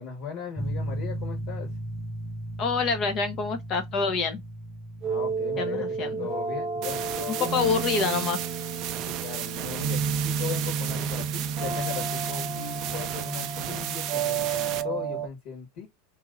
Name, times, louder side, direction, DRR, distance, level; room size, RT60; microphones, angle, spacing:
voice 1, 0.0-1.7 5.0-7.5 9.0-15.9, left 8 dB, 55° left, 1.6 m, -38 dB
sound 1, 0.6-15.3, right 4 dB, 30° right, 0.8 m, -32 dB
voice 2, 2.6-4.4 5.6-6.3 7.4-8.4, left 5 dB, 40° left, 1.0 m, -27 dB
sound 2, 6.8-14.8, right 12 dB, 50° right, 0.5 m, -34 dB
2.8 x 2.7 x 3.9 m
hypercardioid pair, 95°, 0 cm